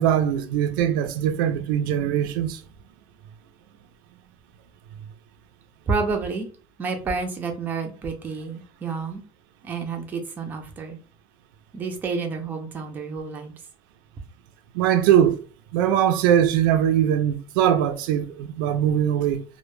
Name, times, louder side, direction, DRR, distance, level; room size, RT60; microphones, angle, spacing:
voice 1, 0.0-2.6 14.7-15.4 15.7-19.4, right 10 dB, 85° right, 0.4 m, -21 dB
voice 2, 5.9-6.5 6.8-9.2 9.6-11.0 11.7-13.5, right 4 dB, 15° right, 0.4 m, -29 dB
2.1 x 2.1 x 3.0 m
cardioid pair, 170°, 11 cm